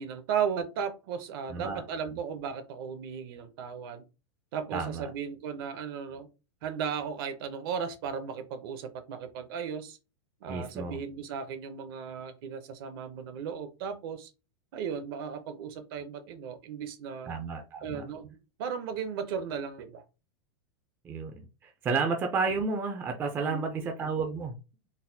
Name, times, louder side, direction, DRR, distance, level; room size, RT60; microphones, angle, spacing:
voice 1, 0.0-4.0 4.5-6.3 6.6-10.0 10.4-14.3 14.7-17.3 17.8-20.0 23.4-23.9, right 7 dB, 55° right, 0.7 m, -36 dB
voice 2, 1.5-1.8 4.7-5.1 10.5-11.0 17.3-18.0 21.0-21.3 21.6-24.5, right 4 dB, 15° right, 0.4 m, -31 dB
3.9 x 2.1 x 2.6 m
supercardioid pair, 155°, 15 cm